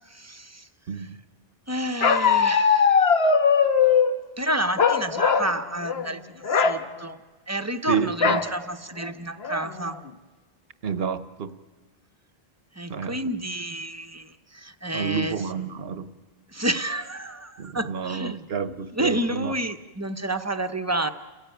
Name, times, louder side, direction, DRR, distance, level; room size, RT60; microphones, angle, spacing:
voice 1, 0.1-0.7 1.0-1.1 1.7-3.1 4.4-7.2 7.5-10.0 12.8-15.4 16.5-18.5 18.9-21.1, right 1 dB, 15° right, 10 dB, 0.8 m, -30 dB
Bark, 2.0-4.1 4.8-5.5 5.8-6.1 6.4-6.8 8.2-8.5 9.0-9.1 9.4-9.9, left 6 dB, 85° left, 1.4 m, -20 dB
voice 2, 7.9-8.4 10.8-11.5 12.9-13.2 14.9-16.1 17.6-19.5, right 6 dB, 75° right, 13 dB, 1.2 m, -29 dB
30.0 x 15.5 x 9.2 m, 1.3 s
omnidirectional pair, 1.0 m